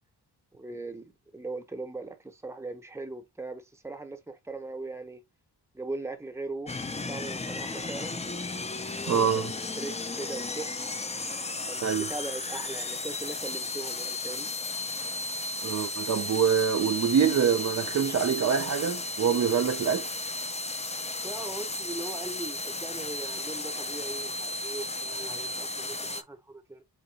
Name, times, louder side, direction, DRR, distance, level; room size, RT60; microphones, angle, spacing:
voice 1, 0.5-1.0 1.3-5.2 5.7-8.2 8.9-10.7 11.7-14.5 21.2-26.8, right 2 dB, 5° right, 0.7 m, -39 dB
sound 1, 6.7-26.2, left 2 dB, 15° left, 0.4 m, -34 dB
voice 2, 9.1-9.5 11.8-12.1 15.6-20.1, right 7 dB, 45° right, 0.4 m, -25 dB
4.5 x 3.8 x 2.8 m
wide cardioid pair, 175°, 41 cm